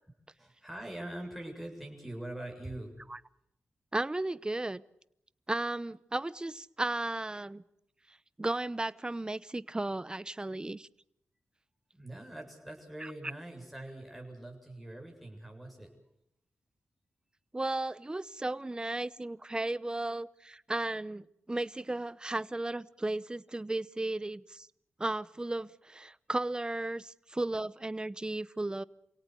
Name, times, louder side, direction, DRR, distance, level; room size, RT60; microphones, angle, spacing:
voice 1, 0.3-2.9 11.9-15.9, right 1 dB, ahead, 7.6 m, -43 dB
voice 2, 3.9-4.8 5.5-7.6 8.1-10.9 13.0-13.1 17.5-24.7 25.0-28.8, right 2 dB, 20° right, 0.8 m, -35 dB
27.5 x 17.5 x 8.2 m
cardioid pair, 70°, 4 cm